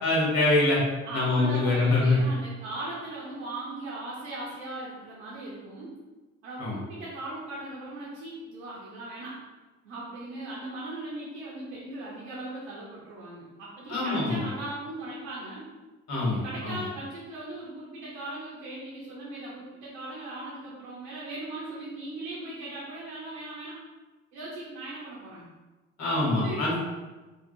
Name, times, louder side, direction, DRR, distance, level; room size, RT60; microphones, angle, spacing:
voice 1, 0.0-0.8 1.1-2.2 6.6-6.8 13.9-14.4 16.1-16.8 26.0-26.7, left 2 dB, 65° left, -6 dB, 1.3 m, -24 dB
voice 2, 1.0-5.9 6.4-9.4 9.8-15.7 16.3-23.8 24.3-25.5 26.1-26.7, right 2 dB, 90° right, -7 dB, 0.7 m, -38 dB
2.7 x 2.3 x 2.6 m, 1.2 s
supercardioid pair, 70°, 29 cm